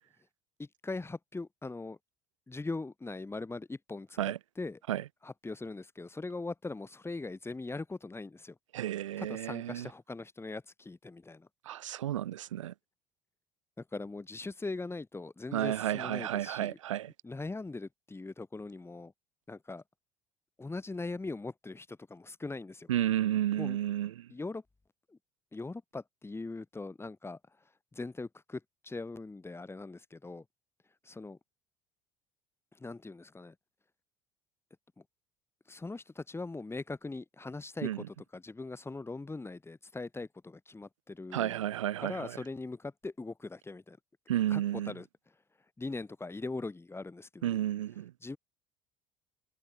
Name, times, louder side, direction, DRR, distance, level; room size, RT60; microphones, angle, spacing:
voice 1, 0.6-2.0 2.5-4.2 4.6-4.8 5.2-8.6 9.2-11.5 13.8-16.8 17.2-19.1 19.5-19.8 20.6-22.9 23.6-23.8 24.3-24.6 25.1-25.2 25.5-27.4 27.9-30.4 31.0-31.4 32.8-33.5 35.0-35.1 35.7-41.7 42.0-44.0 44.5-45.1 45.8-47.6 48.2-48.4, left 3 dB, 15° left, 4.2 m, -41 dB
voice 2, 8.7-9.9 11.7-12.7 15.5-17.1 22.9-24.3 37.8-38.0 41.3-42.3 44.3-44.9 47.4-48.1, right 12 dB, 85° right, 0.4 m, -32 dB
hypercardioid pair, 65°, 16 cm